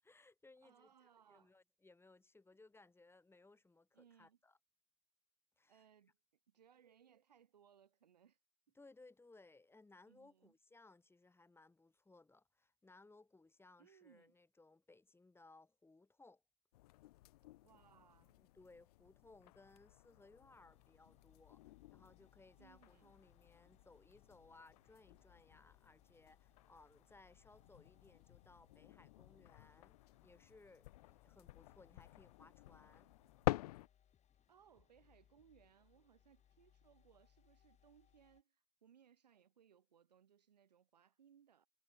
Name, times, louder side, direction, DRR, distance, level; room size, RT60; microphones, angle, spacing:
voice 1, 0.0-4.6 5.6-5.9 8.7-16.4 18.4-29.9 30.2-33.1, left 3 dB, 10° left, 6.5 m, -64 dB
voice 2, 0.6-1.5 3.9-4.4 5.7-6.2 6.5-8.4 10.1-10.5 13.8-14.4 17.6-18.4 22.6-23.1 34.5-41.7, right 8 dB, 85° right, 1.6 m, -68 dB
sound 1, 16.7-33.9, left 17 dB, 65° left, 1.0 m, -49 dB
sound 2, 20.5-38.4, left 9 dB, 35° left, 4.1 m, -73 dB
hypercardioid pair, 85°, 21 cm